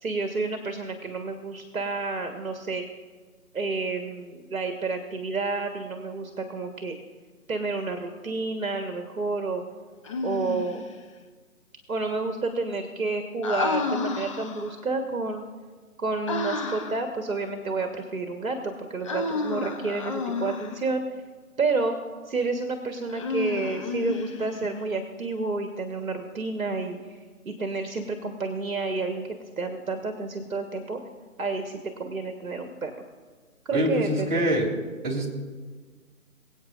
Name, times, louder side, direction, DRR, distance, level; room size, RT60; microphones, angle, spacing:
voice 1, 0.0-2.8 3.5-7.0 7.5-9.6 10.2-10.8 11.9-15.4 16.0-21.0 21.6-22.0 22.2-27.2 27.4-31.0 31.4-32.9 33.6-34.4, right 3 dB, 70° right, 5 dB, 1.5 m, -30 dB
Human voice, 10.0-10.9 13.4-14.8 16.3-17.1 19.0-20.8 23.1-24.7, left 3 dB, 20° left, 0.8 m, -31 dB
voice 2, 33.7-34.7 35.0-35.3, equal, 35° right, -3 dB, 3.1 m, -24 dB
24.0 x 8.6 x 2.6 m, 1.5 s
figure-of-eight pair, 150°, 43 cm